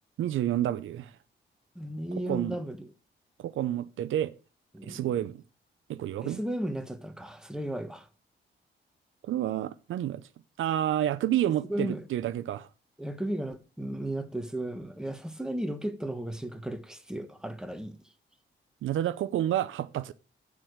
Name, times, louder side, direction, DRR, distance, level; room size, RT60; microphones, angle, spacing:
voice 1, 0.2-1.1 2.3-2.6 3.4-4.3 4.8-5.4 5.9-6.4 9.2-10.2 10.6-12.7 18.8-20.1, right 12 dB, 85° right, 0.6 m, -29 dB
voice 2, 1.7-2.9 4.7-5.2 6.2-8.1 11.7-12.0 13.0-18.0, right 1 dB, 5° right, 1.2 m, -35 dB
8.9 x 4.7 x 6.1 m
cardioid pair, 90°, 20 cm